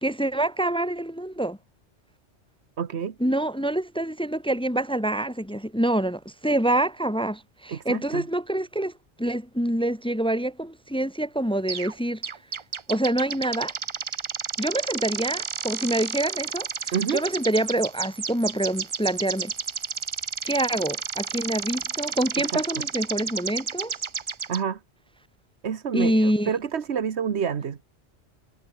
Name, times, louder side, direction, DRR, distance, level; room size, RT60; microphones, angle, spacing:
voice 1, 0.0-1.6 3.2-8.9 9.2-12.2 12.9-13.7 14.6-16.7 17.1-19.5 20.4-23.9 25.9-26.5, right 1 dB, 5° left, 0.7 m, -26 dB
voice 2, 2.8-3.1 7.7-8.2 16.9-17.2 22.5-22.6 24.5-24.8 25.6-27.8, right 7 dB, 75° right, 1.4 m, -28 dB
sound 1, 11.7-11.9 12.2-24.6, right 6 dB, 35° right, 0.5 m, -32 dB
omnidirectional pair, 1.1 m